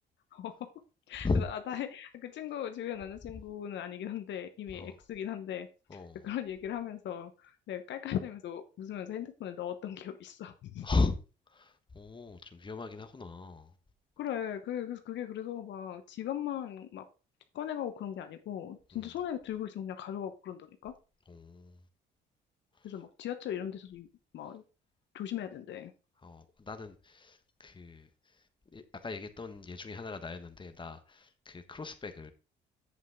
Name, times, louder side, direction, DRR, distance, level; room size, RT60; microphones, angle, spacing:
voice 1, 0.3-0.7 1.1-10.9 14.2-17.0 17.5-20.9 22.8-24.1 24.3-24.6 25.1-25.9, left 10 dB, 70° left, 1.0 m, -38 dB
voice 2, 5.9-6.2 10.8-11.1 11.5-13.7 18.9-19.0 21.3-21.8 26.2-28.1 28.7-32.3, left 3 dB, 25° left, 1.4 m, -36 dB
8.4 x 7.5 x 3.6 m
cardioid pair, 80°, 19 cm